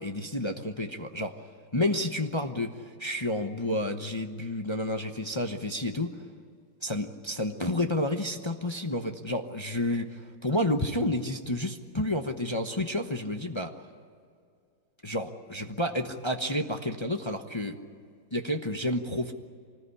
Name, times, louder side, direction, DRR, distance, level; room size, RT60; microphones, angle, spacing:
voice 1, 0.0-1.4 1.7-6.1 6.8-13.8 15.0-17.8 18.3-19.3, left 1 dB, 20° left, 5 dB, 0.7 m, -30 dB
25.0 x 19.5 x 9.8 m, 2.2 s
omnidirectional pair, 2.0 m